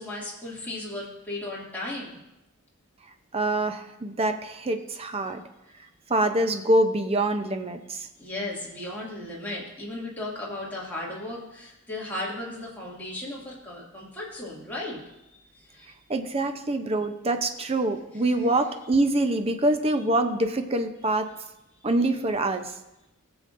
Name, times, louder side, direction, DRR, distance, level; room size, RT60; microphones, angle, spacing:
voice 1, 0.0-2.2 8.2-15.9, left 1 dB, 10° left, -6 dB, 2.3 m, -36 dB
voice 2, 3.3-5.4 6.1-8.1 16.1-21.3 21.8-22.7, right 1 dB, 30° right, 7 dB, 0.6 m, -25 dB
19.5 x 7.0 x 2.6 m, 0.93 s
head